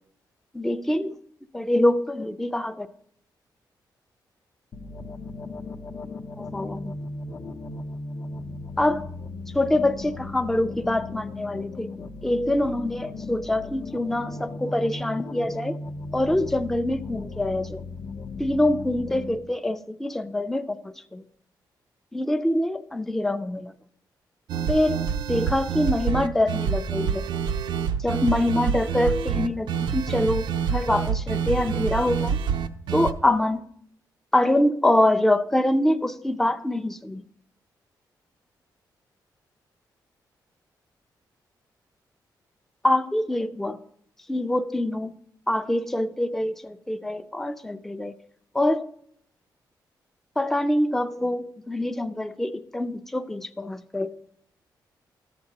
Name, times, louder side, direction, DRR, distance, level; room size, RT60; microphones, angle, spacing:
voice 1, 0.5-1.2 1.5-2.9 6.4-6.9 8.8-9.1 9.5-11.9 12.2-15.8 16.1-17.9 18.4-21.2 22.1-23.7 24.7-25.0 25.3-27.2 28.0-32.4 32.9-33.6 34.3-37.2 42.8-43.8 44.3-45.1 45.5-48.1 48.5-48.9 50.4-54.1, left 1 dB, 5° left, 9 dB, 0.4 m, -25 dB
sound 1, 4.7-19.4, left 3 dB, 50° left, 0.7 m, -37 dB
sound 2, 24.5-33.1, right 7 dB, 85° right, 0.5 m, -27 dB
13.5 x 7.6 x 2.9 m, 0.67 s
cardioid pair, 100°, 8 cm